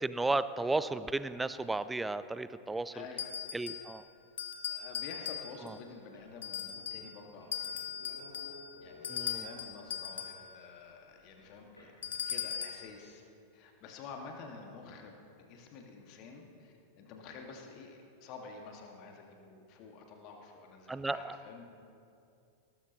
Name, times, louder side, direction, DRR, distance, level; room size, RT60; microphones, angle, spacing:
voice 1, 0.0-3.0 3.5-4.0 5.7-5.8 9.1-9.5 20.9-21.4, right 2 dB, 10° right, 15 dB, 0.4 m, -34 dB
voice 2, 2.9-3.3 4.7-8.2 8.8-11.9 12.2-13.2 13.5-15.2 15.5-21.6, left 4 dB, 40° left, 2 dB, 2.0 m, -49 dB
sound 1, 3.2-3.9 4.4-5.8 6.4-7.1 7.5-10.4 12.0-12.9, left 9 dB, 65° left, 1.1 m, -39 dB
sound 2, 6.0-10.1 11.8-12.9, left 2 dB, 85° left, 3.3 m, -55 dB
18.5 x 14.0 x 3.1 m, 2.5 s
figure-of-eight pair, 90°, 0 cm